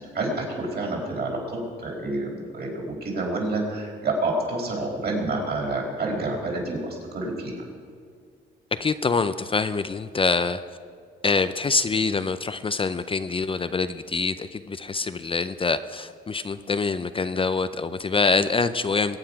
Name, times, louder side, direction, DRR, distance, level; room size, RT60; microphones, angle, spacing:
voice 1, 0.0-7.6, right 2 dB, 55° right, -1 dB, 4.9 m, -28 dB
voice 2, 8.7-10.6 11.2-19.2, left 4 dB, 25° left, 12 dB, 0.5 m, -25 dB
22.0 x 9.0 x 5.8 m, 2.1 s
cardioid pair, 90°, 20 cm